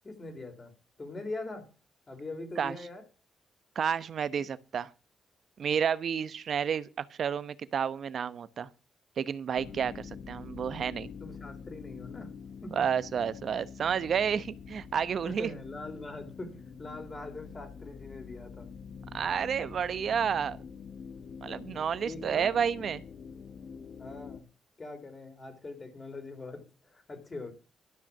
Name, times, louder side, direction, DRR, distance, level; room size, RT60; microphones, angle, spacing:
voice 1, 0.0-0.7 1.0-1.7 2.1-3.0 9.6-9.9 11.2-13.0 15.3-18.7 22.0-22.6 24.0-24.5 24.8-27.5, left 2 dB, 40° left, 3.6 m, -42 dB
voice 2, 3.7-4.9 5.6-8.7 9.2-11.1 12.7-15.5 19.1-20.6 21.4-23.0, right 7 dB, 65° right, 0.9 m, -30 dB
sound 1, 9.5-24.4, left 6 dB, 65° left, 1.1 m, -46 dB
12.5 x 6.0 x 7.1 m
supercardioid pair, 50°, 0 cm